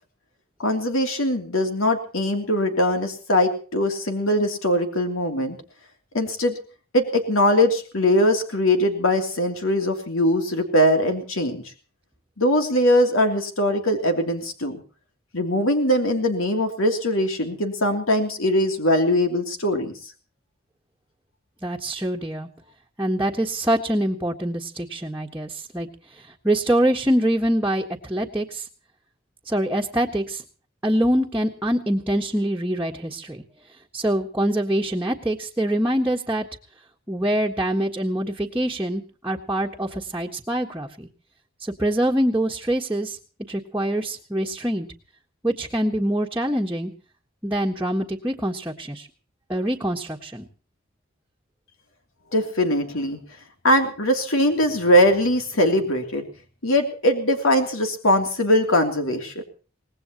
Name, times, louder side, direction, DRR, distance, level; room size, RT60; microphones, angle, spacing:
voice 1, 0.6-5.6 6.1-6.5 6.9-11.6 12.4-14.8 15.3-19.9 52.3-53.2 53.6-56.2 56.6-59.4, left 1 dB, 85° left, 4 dB, 3.0 m, -21 dB
voice 2, 21.6-22.5 23.0-25.9 26.4-28.7 29.5-30.4 30.8-33.4 33.9-36.4 37.1-41.1 41.6-43.2 43.5-44.9 45.4-46.9 47.4-49.1 49.5-50.4, right 1 dB, 10° right, -2 dB, 1.5 m, -24 dB
24.5 x 19.5 x 3.0 m, 0.40 s
head